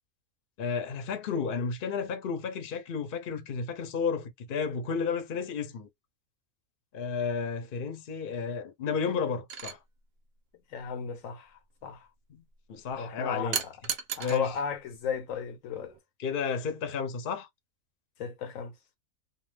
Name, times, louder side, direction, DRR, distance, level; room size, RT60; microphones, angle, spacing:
voice 1, 0.6-5.9 6.9-9.8 12.7-13.6 14.2-14.5 16.2-17.5, left 5 dB, 50° left, 0.7 m, -32 dB
sound 1, 9.5-9.8 13.5-14.4 15.8-16.0, right 7 dB, 65° right, 0.7 m, -34 dB
voice 2, 10.7-12.1 13.0-13.7 14.2-15.9 18.2-18.7, left 6 dB, 70° left, 0.9 m, -35 dB
2.4 x 2.3 x 3.2 m
omnidirectional pair, 1.5 m